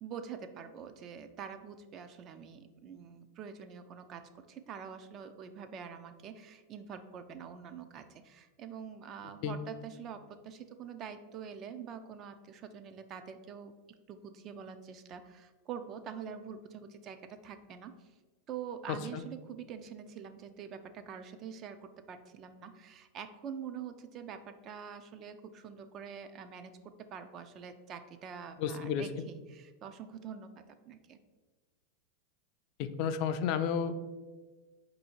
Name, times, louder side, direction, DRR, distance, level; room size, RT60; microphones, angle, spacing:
voice 1, 0.0-13.7 14.1-18.1 18.5-26.8 27.1-31.2, right 7 dB, 35° right, 9 dB, 0.3 m, -45 dB
voice 2, 18.9-19.2 28.6-29.0 32.8-34.0, left 7 dB, 50° left, 10 dB, 0.3 m, -32 dB
4.5 x 2.7 x 4.3 m, 1.3 s
supercardioid pair, 140°, 0 cm